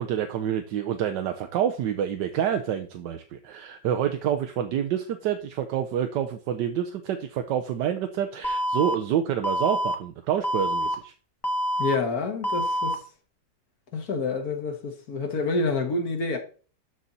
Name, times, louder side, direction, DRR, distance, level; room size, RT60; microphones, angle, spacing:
voice 1, 0.0-11.1, right 9 dB, 80° right, 1.3 m, -28 dB
Alarm, 8.4-8.9 9.4-9.9 10.4-10.9 11.4-11.9 12.4-12.9, equal, 20° left, 0.6 m, -26 dB
voice 2, 11.8-13.0 13.9-16.4, left 3 dB, 60° left, 1.7 m, -28 dB
12.5 x 4.2 x 4.0 m
omnidirectional pair, 1.9 m